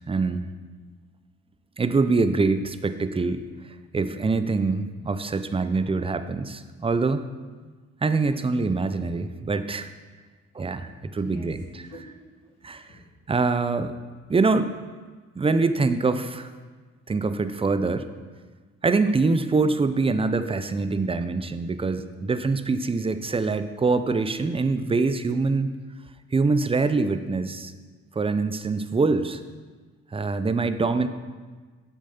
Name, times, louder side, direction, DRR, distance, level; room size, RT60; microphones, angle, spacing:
voice 1, 0.1-0.5 1.8-7.3 8.0-9.9 10.5-11.6 12.6-12.9 13.3-14.0 14.3-14.7 15.3-16.5 17.1-18.1 18.8-25.7 26.3-27.7 28.1-29.4 30.1-31.1, right 3 dB, 20° right, 11 dB, 0.5 m, -24 dB
voice 2, 10.9-13.0, left 1 dB, 55° left, -2 dB, 2.5 m, -50 dB
8.1 x 6.5 x 5.7 m, 1.4 s
cardioid pair, 90°, 30 cm